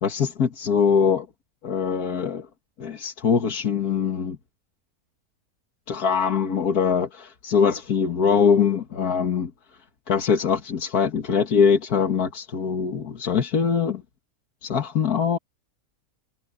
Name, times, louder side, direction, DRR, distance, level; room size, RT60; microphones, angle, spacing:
voice 1, 0.0-1.3 1.6-2.5 2.8-4.4 5.9-9.5 10.1-14.0 14.6-15.4, left 6 dB, 85° left, 2.2 m, -22 dB
omnidirectional pair, 1.6 m